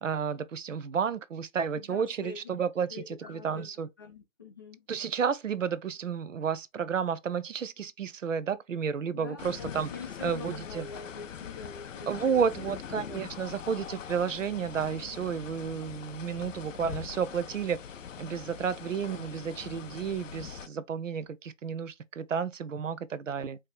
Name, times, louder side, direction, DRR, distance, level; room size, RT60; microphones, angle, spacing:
voice 1, 0.0-3.0 3.3-3.9 4.9-9.9 10.2-10.9 12.1-17.8 18.2-23.6, right 7 dB, 70° right, 0.7 m, -31 dB
voice 2, 1.7-2.6 2.9-3.7 4.0-4.9 9.1-13.1, left 5 dB, 15° left, 0.5 m, -44 dB
sound 1, 9.4-20.7, left 8 dB, 70° left, 0.6 m, -43 dB
4.9 x 2.8 x 3.5 m
figure-of-eight pair, 140°, 39 cm